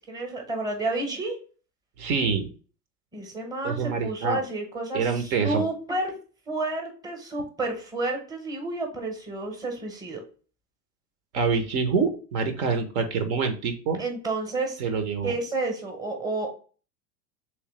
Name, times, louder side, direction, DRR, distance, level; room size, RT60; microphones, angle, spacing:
voice 1, 0.0-1.4 3.1-6.1 6.5-10.2 14.0-14.8 15.2-16.5, right 2 dB, 10° right, 3 dB, 0.8 m, -30 dB
voice 2, 2.0-2.5 3.6-4.4 4.9-5.6 11.3-14.0 14.8-15.3, right 5 dB, 60° right, 8 dB, 0.9 m, -26 dB
3.2 x 3.2 x 3.0 m, 0.38 s
hypercardioid pair, 95°, 50 cm